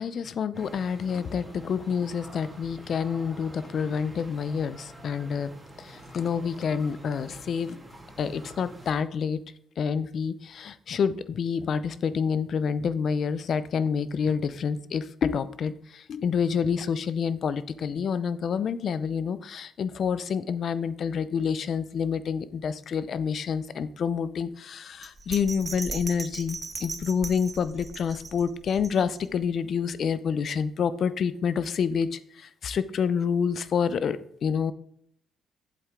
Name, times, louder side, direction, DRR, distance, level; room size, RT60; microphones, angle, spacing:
voice 1, 0.0-5.5 5.8-7.8 8.2-9.4 9.8-34.7, left 6 dB, 60° left, 14 dB, 0.6 m, -28 dB
sound 1, 0.5-9.1, right 1 dB, 15° right, 2.0 m, -47 dB
Bell, 25.0-29.4 29.8-29.9, right 3 dB, 30° right, 0.9 m, -38 dB
8.1 x 7.9 x 3.7 m, 0.70 s
cardioid pair, 90°, 0 cm